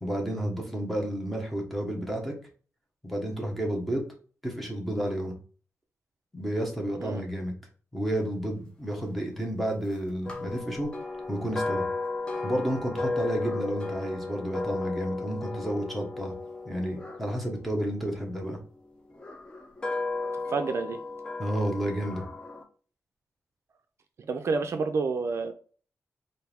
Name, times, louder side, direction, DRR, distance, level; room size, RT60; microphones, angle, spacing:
voice 1, 0.0-2.3 3.0-4.0 4.4-5.3 6.3-7.5 7.9-10.9 11.3-11.8 12.4-16.3 16.6-18.6 21.4-22.2, right 1 dB, ahead, 0 dB, 1.0 m, -31 dB
sound 1, 10.2-18.4 19.1-22.6, left 3 dB, 15° left, 0.7 m, -34 dB
voice 2, 20.5-21.0 24.3-25.5, right 4 dB, 55° right, 7 dB, 0.4 m, -29 dB
4.4 x 2.6 x 3.4 m, 0.40 s
wide cardioid pair, 155°, 6 cm